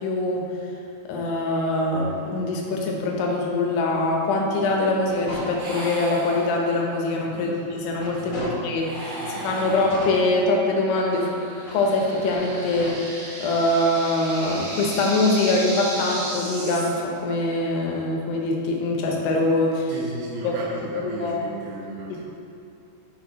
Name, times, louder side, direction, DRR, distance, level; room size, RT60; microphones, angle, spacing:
voice 1, 0.0-0.5 1.1-9.2 9.4-11.4 11.7-13.0 13.4-19.9 20.4-20.6 20.9-21.4, left 2 dB, 80° left, 0 dB, 3.0 m, -23 dB
sound 1, 4.5-6.1 6.6-6.7 7.1-8.9 9.5-11.0 11.6-12.9, left 1 dB, 50° left, 2.1 m, -38 dB
sound 2, 5.6-7.0 8.7-10.5, right 1 dB, 65° right, 3.5 m, -36 dB
voice 2, 7.3-7.7 8.2-8.6 9.2-9.8 19.9-22.2, right 2 dB, 85° right, -6 dB, 3.4 m, -35 dB
sound 3, 11.1-17.0, right 1 dB, 45° right, 2.2 m, -35 dB
11.5 x 5.0 x 2.9 m, 2.6 s
omnidirectional pair, 5.0 m